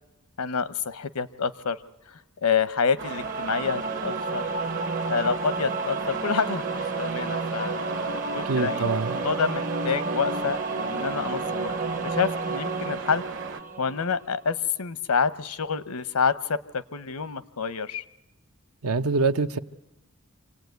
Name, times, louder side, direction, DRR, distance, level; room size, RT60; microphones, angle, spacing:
voice 1, 0.4-1.8 2.1-4.4 5.1-11.7 12.0-13.2 13.8-18.0, left 5 dB, 80° left, 15 dB, 0.8 m, -28 dB
Singing / Musical instrument, 3.0-14.2, right 4 dB, 40° right, 0.9 m, -31 dB
sound 1, 3.0-13.6, right 5 dB, 55° right, 1.2 m, -37 dB
voice 2, 8.5-9.2 18.8-19.6, right 4 dB, 75° right, 10 dB, 0.8 m, -24 dB
26.5 x 18.0 x 9.3 m, 0.96 s
head